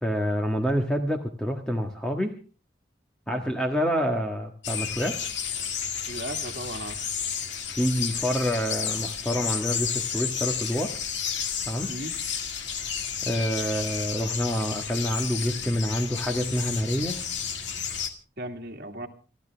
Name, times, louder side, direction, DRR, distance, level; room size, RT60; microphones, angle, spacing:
voice 1, 0.0-2.4 3.3-5.2 7.7-10.9 11.7-11.9 13.2-17.2, equal, 5° left, 3 dB, 1.5 m, -27 dB
sound 1, 4.6-18.1, left 7 dB, 80° left, 2.2 m, -32 dB
voice 2, 6.1-7.0 11.9-12.1 18.4-19.1, right 1 dB, 55° right, 1 dB, 2.1 m, -36 dB
29.5 x 12.0 x 3.4 m, 0.36 s
head